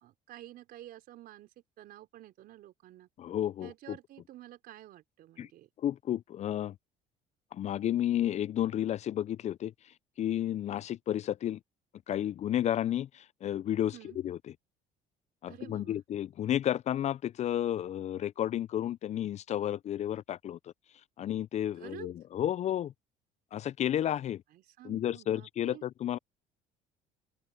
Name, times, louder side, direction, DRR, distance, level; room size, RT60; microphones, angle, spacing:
voice 1, 0.0-3.1 3.6-5.7 13.9-14.2 15.5-16.0 21.7-22.1 24.5-25.9, right 14 dB, 65° right, 4.0 m, -50 dB
voice 2, 3.2-3.7 5.4-5.5 5.8-6.7 7.5-9.7 10.2-11.6 12.1-13.9 14.2-14.4 15.4-20.6 21.2-22.9 23.5-24.4 24.8-26.2, left 11 dB, 45° left, 0.4 m, -32 dB
open air
supercardioid pair, 85°, 16 cm